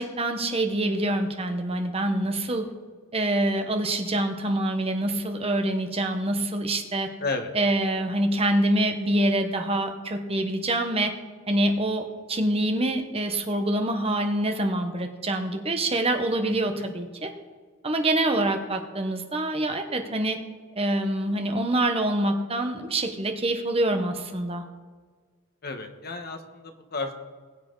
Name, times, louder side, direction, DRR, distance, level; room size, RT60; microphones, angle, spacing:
voice 1, 0.0-2.7 3.1-7.1 7.5-11.1 11.5-17.3 17.8-20.4 20.8-24.6, right 1 dB, 30° right, 6 dB, 1.1 m, -25 dB
voice 2, 7.2-7.5 16.8-16.9 25.6-27.1, left 3 dB, 50° left, 5 dB, 1.2 m, -32 dB
20.0 x 7.8 x 3.9 m, 1.5 s
head